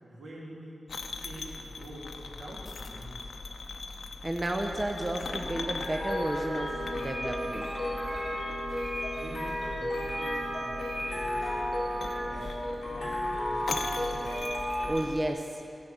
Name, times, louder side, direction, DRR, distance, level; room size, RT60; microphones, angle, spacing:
voice 1, 0.0-3.4 9.2-11.7 12.1-12.5 12.9-14.2, right 1 dB, 80° right, -5 dB, 3.0 m, -46 dB
sound 1, 0.9-15.3, left 4 dB, 80° left, 0.7 m, -41 dB
sound 2, 3.8-14.9, equal, 45° left, 3.6 m, -33 dB
voice 2, 4.2-7.7 14.9-15.6, right 1 dB, 20° right, 2 dB, 0.7 m, -32 dB
15.5 x 5.7 x 8.0 m, 2.6 s
wide cardioid pair, 140°, 0 cm